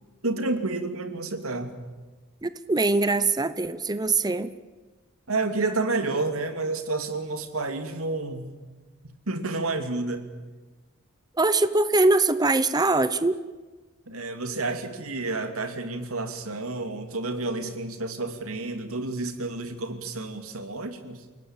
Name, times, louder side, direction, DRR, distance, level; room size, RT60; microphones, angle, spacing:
voice 1, 0.2-1.8 5.3-8.6 9.0-10.3 14.1-21.2, right 3 dB, 85° right, 7 dB, 2.7 m, -30 dB
voice 2, 2.4-4.5 11.3-13.4, right 3 dB, 20° right, 13 dB, 0.7 m, -22 dB
28.5 x 18.5 x 8.9 m, 1.3 s
head